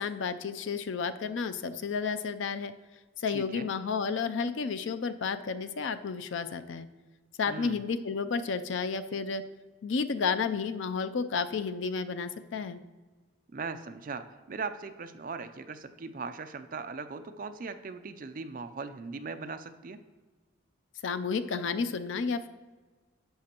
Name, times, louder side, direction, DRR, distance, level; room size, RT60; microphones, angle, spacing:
voice 1, 0.0-2.7 3.2-6.9 7.4-9.4 9.8-12.8 21.0-22.5, left 5 dB, 65° left, 11 dB, 0.4 m, -31 dB
voice 2, 3.3-3.7 7.5-7.8 13.5-20.0, right 4 dB, 40° right, 9 dB, 0.4 m, -39 dB
11.0 x 7.4 x 2.9 m, 1.3 s
head